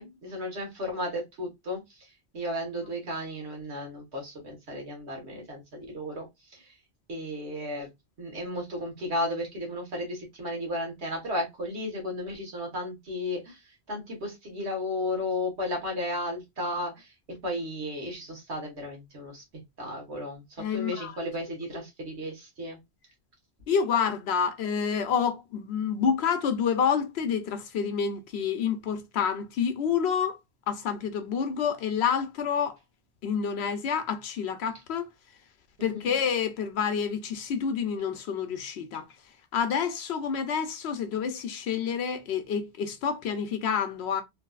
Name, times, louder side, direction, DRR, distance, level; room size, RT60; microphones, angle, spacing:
voice 1, 0.0-6.7 7.1-7.9 8.2-17.1 17.4-19.4 19.8-22.8 35.8-36.1, left 1 dB, 85° right, 1.7 m, -34 dB
voice 2, 20.6-21.1 23.7-30.4 30.7-32.8 33.2-35.1 35.8-39.1 39.5-44.2, left 7 dB, 75° left, 0.9 m, -28 dB
3.3 x 2.6 x 2.3 m
omnidirectional pair, 1.1 m